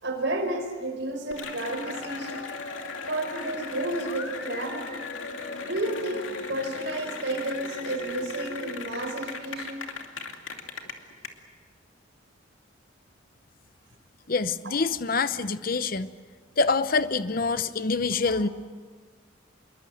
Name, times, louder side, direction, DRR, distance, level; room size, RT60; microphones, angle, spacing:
voice 1, 0.0-2.5 3.1-5.0 5.6-9.8 18.2-18.4, right 1 dB, 65° right, 4 dB, 5.2 m, -31 dB
Cheering / Applause, 1.3-11.3, left 4 dB, 80° left, 2.6 m, -37 dB
voice 2, 14.3-16.1 16.6-18.5, left 4 dB, 45° left, 13 dB, 0.8 m, -26 dB
27.0 x 22.5 x 7.8 m, 1.5 s
head